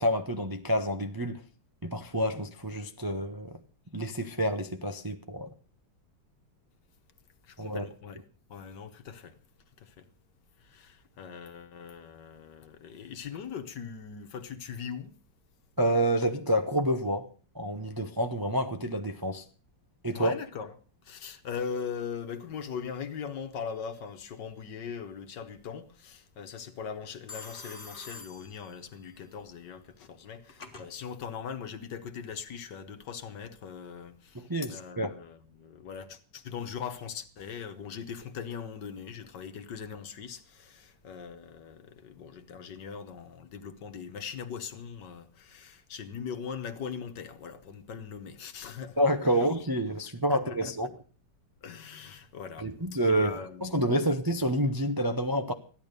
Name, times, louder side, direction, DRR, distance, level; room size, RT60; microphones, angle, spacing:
voice 1, 0.0-1.4 1.8-3.6 3.9-5.5 7.6-7.9 15.8-17.3 17.5-19.4 20.0-20.3 34.3-35.1 49.0-50.9 52.6-55.5, equal, 20° right, 0.5 m, -28 dB
voice 2, 7.5-8.2 8.5-9.4 9.8-10.1 10.6-15.1 20.1-20.7 21.0-49.0 50.3-50.7 51.6-54.1, left 6 dB, 70° left, 1.8 m, -40 dB
Telephone, 23.7-24.2 27.3-29.1 30.1-30.9, left 3 dB, 30° left, 1.9 m, -47 dB
14.5 x 11.0 x 6.6 m
omnidirectional pair, 2.0 m